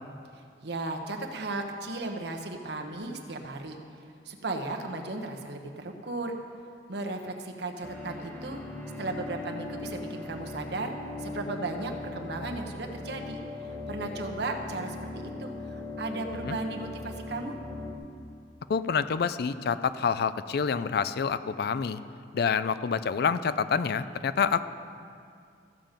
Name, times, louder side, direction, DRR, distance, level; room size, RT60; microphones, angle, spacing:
voice 1, 0.3-3.8 4.2-6.3 6.9-8.6 9.0-10.9 11.2-17.6, right 2 dB, 65° right, 3 dB, 1.1 m, -36 dB
sound 1, 7.8-18.0, left 2 dB, 10° left, 1.1 m, -39 dB
voice 2, 18.7-22.0 22.3-24.7, left 6 dB, 60° left, 13 dB, 0.4 m, -27 dB
14.5 x 7.4 x 5.2 m, 2.3 s
head